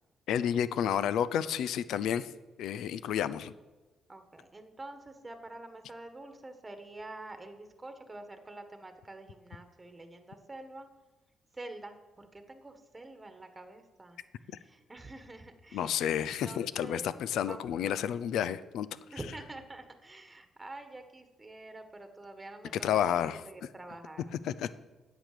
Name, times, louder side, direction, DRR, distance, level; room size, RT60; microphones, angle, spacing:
voice 1, 0.3-2.3 2.6-3.5 15.7-18.9 22.8-23.4 24.4-24.7, left 9 dB, 80° left, 15 dB, 0.5 m, -30 dB
voice 2, 4.1-10.9 11.5-17.1 17.5-17.6 19.1-22.7 23.1-24.3, right 2 dB, 20° right, 7 dB, 1.4 m, -47 dB
9.1 x 8.2 x 6.7 m, 1.2 s
cardioid pair, 85°, 0 cm